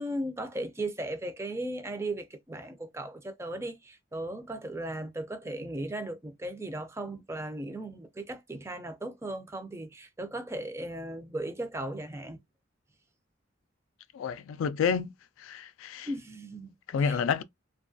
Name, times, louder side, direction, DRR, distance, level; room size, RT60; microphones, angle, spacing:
voice 1, 0.0-12.4 16.1-16.7 17.0-17.2, right 1 dB, 15° right, 0.4 m, -37 dB
voice 2, 14.1-15.1 15.4-16.1 16.9-17.4, left 6 dB, 85° left, 0.3 m, -29 dB
3.0 x 2.3 x 2.4 m
head